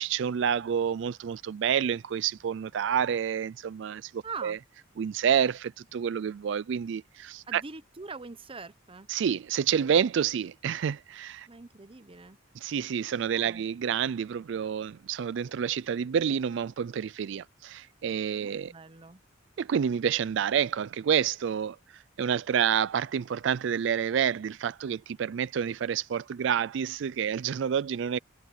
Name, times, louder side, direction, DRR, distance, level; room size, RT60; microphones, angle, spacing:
voice 1, 0.0-4.6 5.0-7.6 9.1-11.5 12.6-18.7 19.6-28.2, right 8 dB, 65° right, 0.4 m, -28 dB
voice 2, 4.2-4.6 7.5-9.1 11.5-12.4 13.3-13.6 18.4-19.2, right 4 dB, 30° right, 0.8 m, -43 dB
head